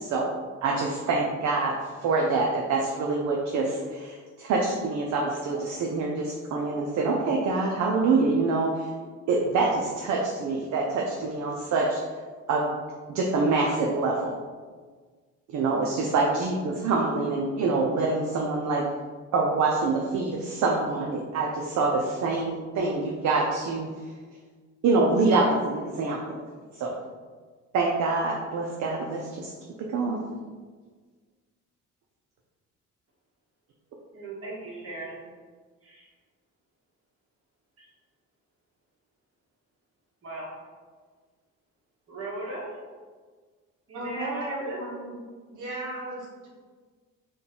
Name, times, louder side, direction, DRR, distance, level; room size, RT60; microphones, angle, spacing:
voice 1, 0.6-1.7 2.0-8.9 9.3-12.0 12.5-12.8 13.1-14.3 15.5-18.8 19.3-23.9 24.8-26.4 26.8-27.0 27.7-29.5 29.9-30.2, right 3 dB, 70° right, -1 dB, 0.6 m, -25 dB
voice 2, 34.1-35.2 35.8-36.1 37.8-37.9 40.2-40.5 42.1-42.8 43.9-44.8, right 2 dB, 50° right, -5 dB, 1.5 m, -38 dB
voice 3, 43.9-45.2 45.5-46.5, right 1 dB, 85° right, -4 dB, 1.1 m, -35 dB
3.8 x 2.3 x 3.8 m, 1.5 s
cardioid pair, 90°, 30 cm